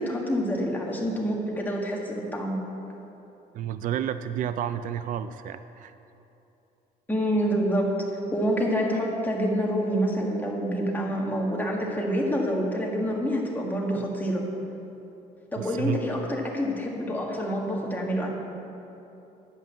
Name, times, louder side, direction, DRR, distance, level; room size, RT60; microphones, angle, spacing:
voice 1, 0.0-2.6 7.1-14.4 15.5-18.3, equal, 10° left, -2 dB, 1.7 m, -27 dB
voice 2, 3.5-5.9 15.6-16.0, right 10 dB, 50° right, 12 dB, 0.4 m, -31 dB
10.5 x 5.3 x 7.5 m, 2.9 s
cardioid pair, 110°, 17 cm